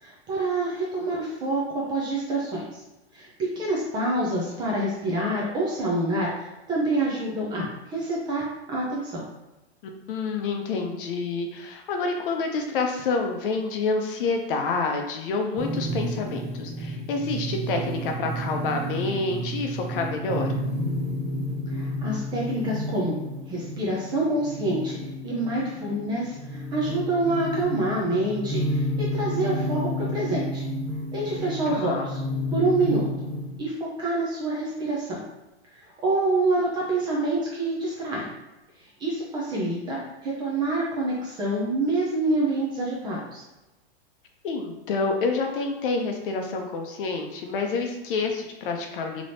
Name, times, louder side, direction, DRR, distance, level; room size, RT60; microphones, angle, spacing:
voice 1, 0.0-2.6 3.1-9.2 21.7-23.2 23.5-25.0 25.2-30.6 31.1-32.2 32.5-33.1 33.6-35.2 36.0-38.3 39.0-43.4, right 2 dB, 15° right, -4 dB, 0.4 m, -27 dB
voice 2, 9.8-20.5 31.7-32.1 44.4-49.2, left 4 dB, 55° left, 3 dB, 0.7 m, -28 dB
sound 1, 15.6-33.6, equal, 35° right, 1.4 m, -31 dB
3.4 x 3.0 x 2.6 m, 1.0 s
hypercardioid pair, 150°, 33 cm